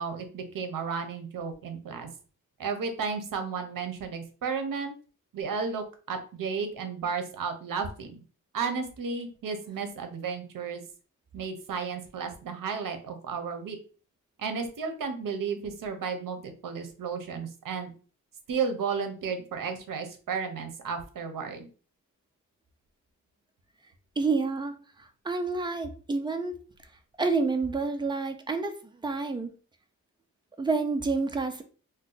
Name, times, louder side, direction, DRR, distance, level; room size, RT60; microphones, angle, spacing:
voice 1, 0.0-2.1 2.6-4.9 5.3-8.2 8.5-10.8 11.3-13.8 14.4-17.9 18.5-21.7, right 5 dB, 75° right, 7 dB, 0.7 m, -33 dB
voice 2, 24.2-26.6 27.2-29.5 30.6-31.6, right 4 dB, 15° right, 6 dB, 0.3 m, -29 dB
2.6 x 2.2 x 3.8 m, 0.38 s
wide cardioid pair, 155°, 33 cm